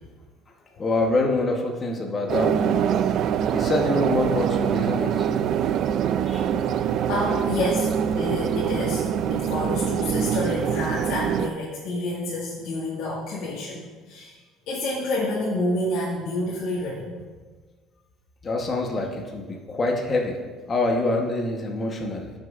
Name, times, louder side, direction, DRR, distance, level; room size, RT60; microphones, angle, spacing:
voice 1, 0.8-2.8 3.5-5.3 6.3-6.5 18.4-20.4 20.7-22.3, left 2 dB, 25° left, 0 dB, 1.0 m, -25 dB
sound 1, 2.3-11.5, right 8 dB, 55° right, 0.3 m, -24 dB
voice 2, 6.8-7.9 8.2-9.0 9.3-14.4 14.7-17.2, left 2 dB, 70° left, -9 dB, 1.9 m, -28 dB
14.5 x 6.4 x 2.4 m, 1.4 s
cardioid pair, 140°, 0 cm